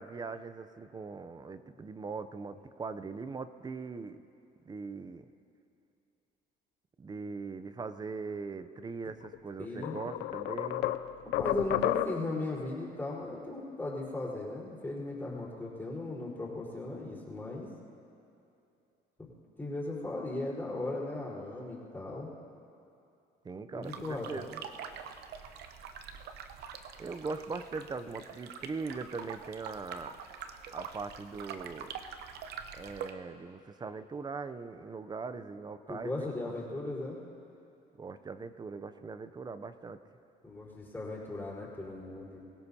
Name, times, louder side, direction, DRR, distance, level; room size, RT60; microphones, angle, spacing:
voice 1, 0.0-4.2 4.7-5.2 7.0-11.0 23.4-24.6 27.0-30.2 30.7-31.9 32.7-36.8 38.0-40.0, right 4 dB, 25° right, 12 dB, 0.6 m, -41 dB
sound 1, 9.2-9.4 9.8-12.4, left 14 dB, 85° left, 0.5 m, -32 dB
voice 2, 9.6-10.0 11.2-17.7 19.2-19.3 19.6-22.3 23.7-24.4 35.9-37.2 40.4-42.5, left 2 dB, 10° left, -7 dB, 4.4 m, -37 dB
sound 2, 23.8-33.1, right 7 dB, 75° right, 0.9 m, -45 dB
24.5 x 16.5 x 2.9 m, 2.7 s
cardioid pair, 110°, 17 cm